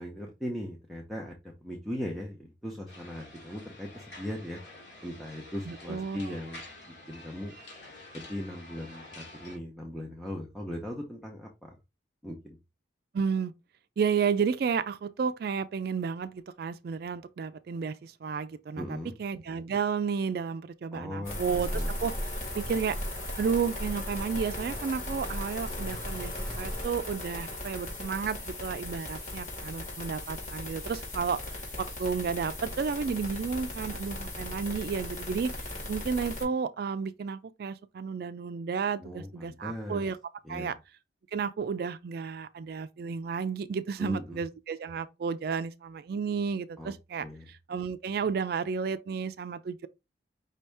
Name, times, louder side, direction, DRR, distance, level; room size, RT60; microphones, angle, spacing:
voice 1, 0.0-1.3 1.6-4.6 5.0-6.6 6.9-7.5 8.1-11.8 12.2-12.6 18.8-19.2 20.9-21.4 21.7-21.9 39.0-40.0 40.4-40.7 44.0-44.4 46.8-46.9 47.2-47.5, left 1 dB, ahead, 0.7 m, -38 dB
sound 1, 2.9-9.6, left 2 dB, 75° left, 2.5 m, -49 dB
voice 2, 5.7-6.4 13.1-13.5 14.0-22.1 22.5-23.0 23.4-31.4 31.8-35.5 35.9-40.2 40.5-40.8 41.3-49.9, right 6 dB, 55° right, 0.3 m, -32 dB
sound 2, 21.2-36.4, left 1 dB, 40° left, 2.1 m, -38 dB
sound 3, 21.4-26.9, equal, 15° right, 1.0 m, -38 dB
5.3 x 2.7 x 3.4 m
head